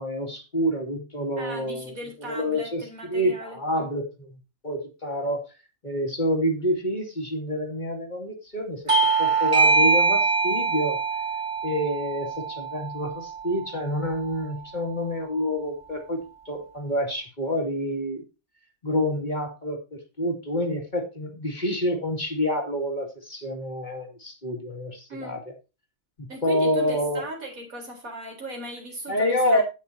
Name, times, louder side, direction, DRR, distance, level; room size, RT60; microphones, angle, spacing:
voice 1, 0.0-1.9 2.3-2.8 3.1-4.3 4.6-5.5 5.8-8.8 9.2-11.0 11.6-18.2 18.8-25.4 26.2-27.2 29.1-29.6, equal, 35° left, 3 dB, 2.7 m, -27 dB
voice 2, 1.4-3.9 25.1-25.4 26.3-29.6, equal, 85° right, 1 dB, 4.6 m, -38 dB
Bell / Doorbell, 8.9-14.0, right 4 dB, 25° right, 1.4 m, -23 dB
17.0 x 6.6 x 2.8 m, 0.28 s
omnidirectional pair, 1.4 m